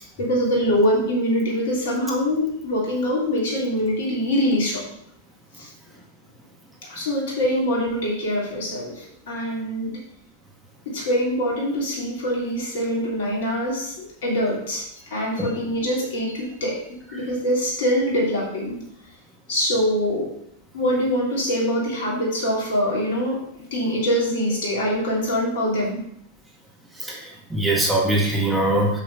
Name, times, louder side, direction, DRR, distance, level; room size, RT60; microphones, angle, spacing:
voice 1, 0.2-4.8 5.6-5.7 6.8-10.0 10.8-18.8 19.5-20.3 20.7-26.0, equal, 60° left, -3 dB, 2.9 m, -24 dB
voice 2, 27.0-29.0, right 1 dB, 5° right, -3 dB, 2.0 m, -22 dB
7.3 x 6.4 x 4.0 m, 0.73 s
figure-of-eight pair, 95°, 0 cm